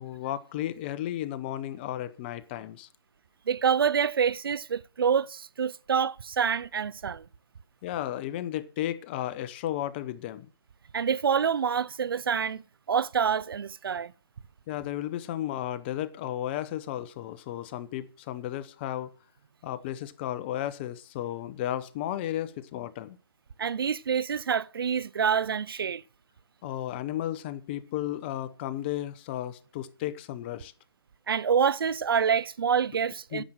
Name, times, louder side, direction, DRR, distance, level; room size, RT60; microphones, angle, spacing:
voice 1, 0.0-2.9 7.8-10.5 14.7-19.1 19.6-23.2 26.6-30.7 33.3-33.4, left 12 dB, 25° left, 0.9 m, -34 dB
voice 2, 3.5-7.3 10.9-12.6 12.9-14.1 23.6-26.0 31.3-33.4, right 7 dB, 70° right, 0.6 m, -27 dB
10.0 x 7.7 x 8.9 m
hypercardioid pair, 150°, 13 cm